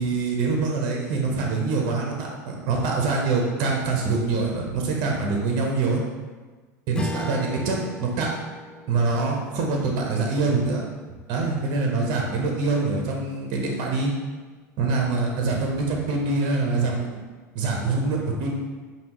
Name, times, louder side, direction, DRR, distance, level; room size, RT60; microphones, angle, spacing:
voice 1, 0.0-6.0 6.9-8.3 8.9-10.8 11.3-14.1 14.8-17.1 17.5-18.6, right 3 dB, 55° right, 0 dB, 0.9 m, -24 dB
Strum, 6.9-11.6, equal, 10° left, 0.4 m, -37 dB
5.2 x 2.8 x 3.0 m, 1.3 s
hypercardioid pair, 95°, 9 cm